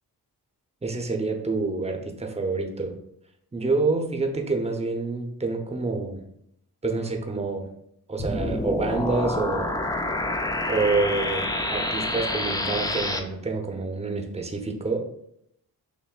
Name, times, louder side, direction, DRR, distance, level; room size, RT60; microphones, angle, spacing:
voice 1, 0.8-3.0 3.5-6.2 6.8-7.7 8.1-9.8 10.7-15.0, right 3 dB, 15° right, 3 dB, 0.7 m, -27 dB
sound 1, 8.2-13.2, left 1 dB, 10° left, 0.4 m, -27 dB
6.9 x 2.5 x 2.4 m, 0.74 s
cardioid pair, 55°, 40 cm